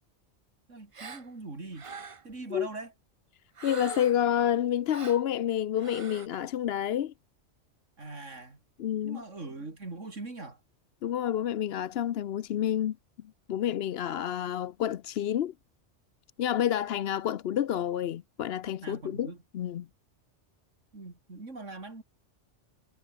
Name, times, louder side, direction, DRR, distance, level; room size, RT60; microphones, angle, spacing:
voice 1, 0.7-1.9 2.2-2.9 8.0-8.6 9.0-10.6 18.8-19.4 20.9-22.0, right 3 dB, 90° right, 4.1 m, -41 dB
Gasp, 0.9-1.3 1.7-2.3 3.6-4.3 4.9-5.2 5.8-6.3, right 5 dB, 30° right, 0.8 m, -42 dB
voice 2, 3.6-7.1 8.8-9.2 11.0-13.0 13.5-15.5 16.4-19.9, left 10 dB, 60° left, 0.8 m, -29 dB
omnidirectional pair, 1.2 m